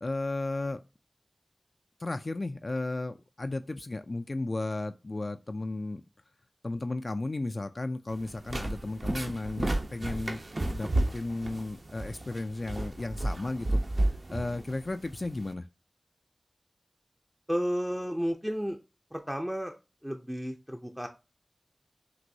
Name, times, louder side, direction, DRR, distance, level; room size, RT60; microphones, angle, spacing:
voice 1, 0.0-0.8 2.0-6.0 6.6-10.4 10.7-15.7, left 2 dB, 50° left, 0.3 m, -34 dB
sound 1, 8.1-15.5, right 1 dB, 60° right, 0.8 m, -32 dB
voice 2, 17.5-18.8 19.1-19.7 20.0-21.1, equal, 5° right, 0.5 m, -32 dB
6.0 x 2.6 x 2.6 m
wide cardioid pair, 65°, 0 cm